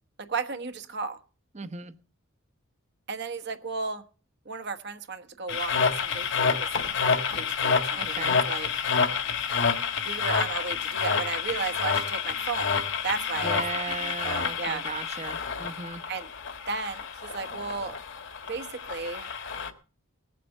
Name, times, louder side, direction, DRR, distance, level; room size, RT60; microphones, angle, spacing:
voice 1, 0.3-1.2 3.1-4.0 4.4-8.7 10.0-12.7 13.0-13.6 14.0-14.8 16.1-16.3 16.7-18.0 18.5-19.3, right 4 dB, 55° right, 9 dB, 1.2 m, -34 dB
voice 2, 1.5-1.9 7.9-8.4 13.4-16.0, right 4 dB, 35° right, 12 dB, 1.0 m, -36 dB
sound 1, 5.5-19.7, left 6 dB, 60° left, 1.6 m, -28 dB
19.0 x 7.6 x 6.6 m, 0.39 s
head